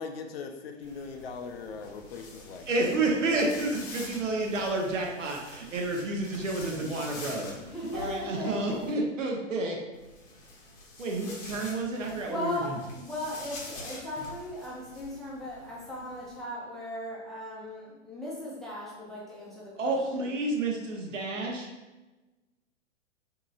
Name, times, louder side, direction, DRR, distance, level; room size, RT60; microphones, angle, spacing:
voice 1, 0.0-2.7, left 5 dB, 55° left, 5 dB, 0.5 m, -40 dB
sound 1, 0.8-8.9 9.9-16.4, left 2 dB, 30° left, 0.8 m, -46 dB
voice 2, 2.7-7.5 7.9-9.8 11.0-12.7 19.8-21.7, right 2 dB, 80° right, 0 dB, 0.9 m, -30 dB
voice 3, 7.6-8.8 12.3-20.4, left 1 dB, ahead, -7 dB, 0.6 m, -38 dB
3.8 x 2.9 x 2.4 m, 1.1 s
hypercardioid pair, 115°, 38 cm